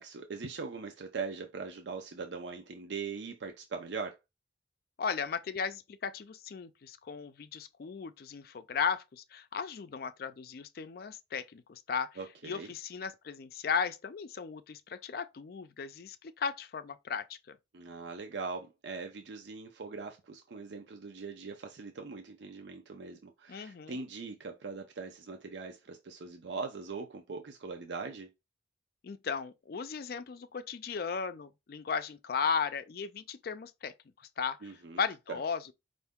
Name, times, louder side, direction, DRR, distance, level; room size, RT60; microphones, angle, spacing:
voice 1, 0.0-4.2 12.2-12.7 17.7-28.3 34.6-35.0 35.3-35.4, right 4 dB, 90° right, 0.6 m, -41 dB
voice 2, 5.0-12.2 12.4-17.6 23.5-24.0 29.0-33.9 34.4-34.7 35.0-35.7, left 6 dB, 60° left, 0.4 m, -36 dB
4.4 x 2.6 x 3.5 m
head